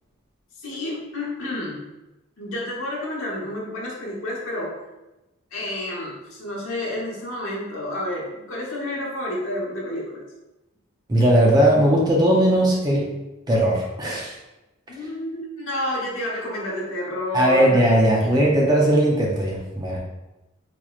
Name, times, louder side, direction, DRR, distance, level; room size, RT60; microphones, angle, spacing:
voice 1, 0.6-1.8 2.4-4.8 5.5-10.2 14.9-17.8 18.2-18.6, left 1 dB, 70° left, -5 dB, 1.1 m, -30 dB
voice 2, 11.1-13.0 13.5-14.3 17.3-20.0, right 1 dB, 20° right, -3 dB, 0.5 m, -18 dB
4.1 x 3.0 x 2.4 m, 1.0 s
head